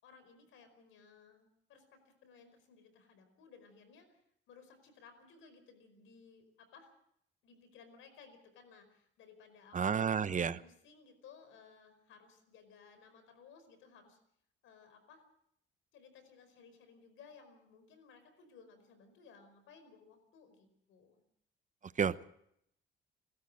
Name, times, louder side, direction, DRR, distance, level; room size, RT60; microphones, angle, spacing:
voice 1, 0.0-4.2 4.5-6.9 7.4-14.2 14.6-15.2 15.9-21.2, left 5 dB, 85° left, 9 dB, 5.0 m, -59 dB
voice 2, 9.7-10.6 22.0-22.2, right 7 dB, 40° right, 15 dB, 0.9 m, -31 dB
30.0 x 13.0 x 7.7 m, 0.74 s
cardioid pair, 90°, 20 cm